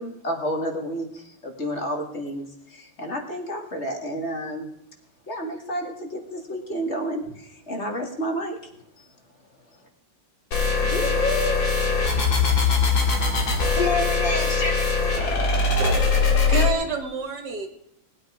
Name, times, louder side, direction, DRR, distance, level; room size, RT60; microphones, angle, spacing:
voice 1, 0.0-4.7 5.3-7.2 7.7-8.6, equal, 35° left, 3 dB, 2.3 m, -30 dB
sound 1, 10.5-16.7, left 4 dB, 80° left, 3.0 m, -21 dB
voice 2, 10.9-11.6 13.7-15.7, left 3 dB, 65° left, -1 dB, 3.8 m, -28 dB
voice 3, 15.8-17.7, right 4 dB, 60° right, 5 dB, 2.2 m, -29 dB
19.5 x 9.6 x 5.0 m, 0.76 s
omnidirectional pair, 2.1 m